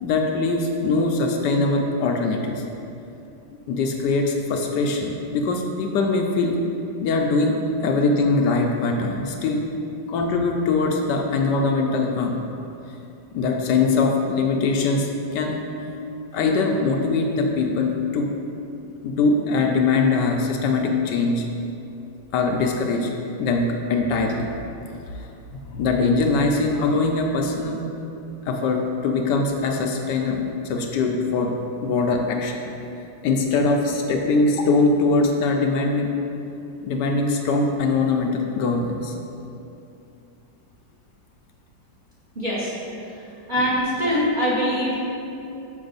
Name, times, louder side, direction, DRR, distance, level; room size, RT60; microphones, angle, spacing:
voice 1, 0.0-2.6 3.7-6.6 7.0-9.6 10.1-12.4 13.3-15.6 16.3-18.3 19.0-21.4 22.3-23.1 23.4-24.5 25.1-25.3 25.7-27.8 28.5-31.5 31.8-32.7 33.2-36.1 36.8-39.1, left 3 dB, 75° left, 2 dB, 1.1 m, -22 dB
voice 2, 42.3-42.7 43.5-44.9, equal, 30° right, -7 dB, 1.0 m, -22 dB
6.2 x 5.8 x 3.9 m, 2.8 s
omnidirectional pair, 2.0 m